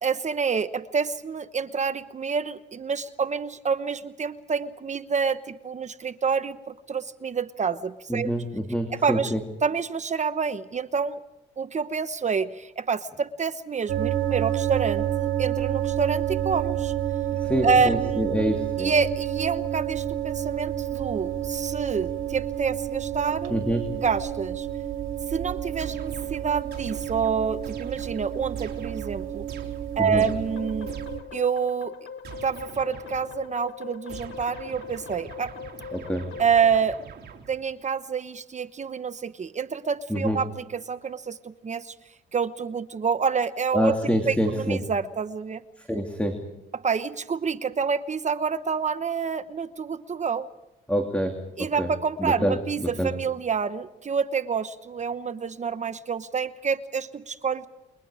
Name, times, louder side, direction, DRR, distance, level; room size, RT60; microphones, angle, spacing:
voice 1, 0.0-8.3 8.9-9.3 9.6-11.2 11.6-16.9 17.6-18.3 18.8-23.5 24.0-24.7 25.3-29.5 30.0-30.9 31.3-31.9 32.4-35.5 36.4-37.0 37.5-41.9 42.3-45.6 46.7-50.5 51.6-57.7, right 6 dB, 35° right, 12 dB, 1.0 m, -27 dB
voice 2, 8.1-9.4 17.3-18.9 23.5-23.8 30.0-30.2 35.9-36.3 40.1-40.4 43.7-44.8 45.8-46.4 50.9-51.9 52.2-52.6 53.0-53.1, equal, 5° left, 4 dB, 2.8 m, -26 dB
sound 1, 13.9-31.2, right 11 dB, 85° right, 2.5 m, -29 dB
sound 2, 25.8-31.4 32.2-33.5 34.1-37.8, right 6 dB, 55° right, 3.8 m, -44 dB
sound 3, 30.5-36.8, left 6 dB, 75° left, 2.2 m, -41 dB
29.0 x 23.0 x 4.9 m, 0.88 s
cardioid pair, 90°, 20 cm